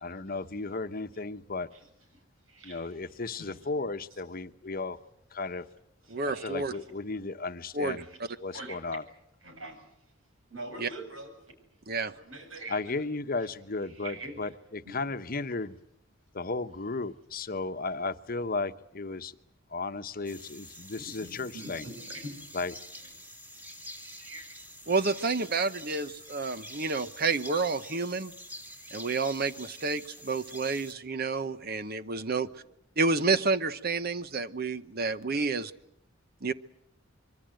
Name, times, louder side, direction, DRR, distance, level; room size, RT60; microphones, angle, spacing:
voice 1, 0.0-1.7 2.6-5.0 5.3-5.6 6.4-8.1 8.4-9.0 12.7-15.8 16.3-19.4 19.7-21.9 22.5-22.7, left 3 dB, 45° left, 10 dB, 1.0 m, -34 dB
voice 2, 2.1-3.0 3.4-3.6 6.0-6.6 7.8-8.2 8.5-8.8 9.4-9.9 10.5-11.3 12.1-13.1 13.9-14.5 21.0-22.4 23.7-24.5 32.3-32.6 35.2-35.5, right 1 dB, 85° right, 6 dB, 7.6 m, -45 dB
voice 3, 6.1-6.7 7.7-8.0 10.8-10.9 11.9-12.1 24.9-28.3 28.9-32.5 33.0-35.7 36.4-36.5, right 4 dB, 50° right, 13 dB, 1.0 m, -29 dB
sound 1, 20.2-30.9, equal, 10° right, 2.2 m, -46 dB
25.5 x 24.0 x 7.8 m, 0.76 s
head